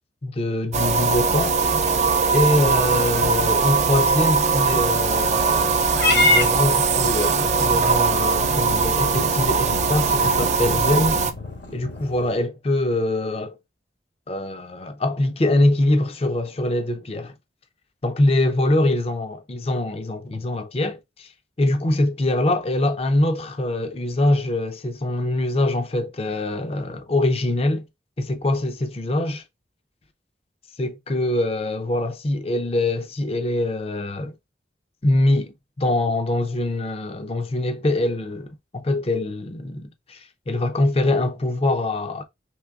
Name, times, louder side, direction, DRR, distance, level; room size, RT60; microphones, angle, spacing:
voice 1, 0.2-1.8 2.3-5.8 6.1-11.2 11.7-13.6 14.3-17.3 18.0-21.3 21.6-27.8 28.2-29.4 30.8-34.3 35.0-42.2, left 1 dB, 35° left, 0.5 m, -23 dB
sound 1, 0.7-11.3, right 5 dB, 40° right, 0.4 m, -20 dB
Purr / Meow, 5.9-12.4, left 2 dB, 80° left, 1.7 m, -27 dB
4.6 x 3.2 x 2.3 m
head